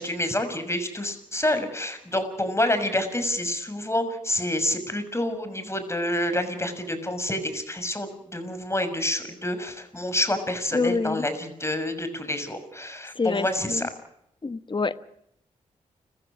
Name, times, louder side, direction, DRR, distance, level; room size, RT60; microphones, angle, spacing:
voice 1, 0.0-13.9, left 1 dB, 20° left, 10 dB, 6.5 m, -28 dB
voice 2, 10.7-11.3 13.1-13.9 14.4-15.0, left 4 dB, 35° left, 12 dB, 1.3 m, -27 dB
30.0 x 16.0 x 6.3 m, 0.76 s
supercardioid pair, 40°, 14 cm